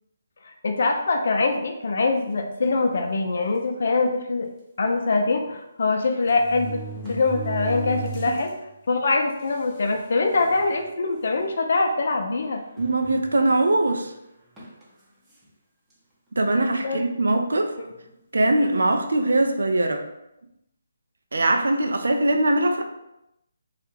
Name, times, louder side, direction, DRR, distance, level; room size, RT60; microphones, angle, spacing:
voice 1, 0.4-4.5 4.8-6.8 7.1-8.5 8.9-12.6 16.8-17.0 17.8-17.9, left 3 dB, 60° left, 4 dB, 0.4 m, -23 dB
sound 1, 2.6-2.9 3.7-3.8 4.1-4.2 5.5-5.6 6.2-8.5 9.0-9.1 9.9-10.0 10.3-10.7 11.3-11.5 12.8-13.6 14.6-14.8, right 3 dB, 10° right, 0.6 m, -35 dB
voice 2, 12.8-14.1 16.4-17.7 18.3-20.0 21.3-22.8, right 2 dB, 80° right, 5 dB, 0.4 m, -21 dB
2.3 x 2.1 x 3.1 m, 0.86 s
figure-of-eight pair, 155°, 0 cm